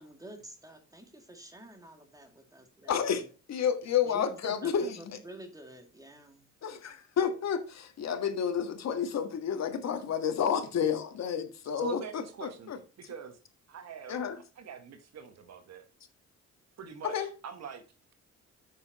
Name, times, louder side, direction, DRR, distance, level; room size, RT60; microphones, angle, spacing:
voice 1, 0.0-3.3 4.0-6.5, right 1 dB, 10° right, 2.2 m, -49 dB
voice 2, 2.9-5.2 6.6-12.8 14.1-14.4 17.0-17.3, left 8 dB, 60° left, 1.6 m, -30 dB
voice 3, 11.8-12.7 13.0-13.4 13.7-14.2 14.5-15.8 16.8-17.8, right 6 dB, 60° right, 1.4 m, -42 dB
7.1 x 6.6 x 4.2 m
cardioid pair, 90°, 30 cm